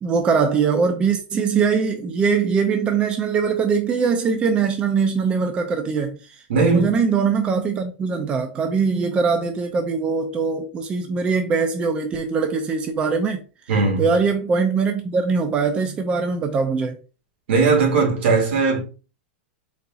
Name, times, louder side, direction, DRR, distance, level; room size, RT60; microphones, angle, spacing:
voice 1, 0.0-13.4 14.0-17.0, right 5 dB, 15° right, 0.4 m, -22 dB
voice 2, 6.5-6.9 13.7-14.1 17.5-18.8, right 4 dB, 75° right, 2.1 m, -18 dB
4.1 x 3.8 x 2.3 m
supercardioid pair, 160°, 6 cm